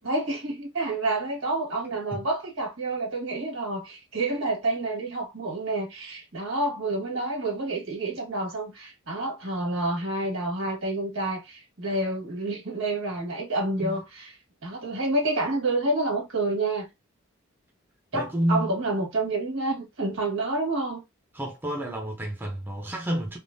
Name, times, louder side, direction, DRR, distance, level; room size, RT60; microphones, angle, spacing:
voice 1, 0.0-14.3 14.6-16.9 18.1-21.0, right 2 dB, 75° right, 1.6 m, -28 dB
voice 2, 1.8-2.2 13.8-14.0 18.1-18.7 21.3-23.4, equal, 10° right, 0.5 m, -30 dB
3.3 x 2.0 x 2.6 m
head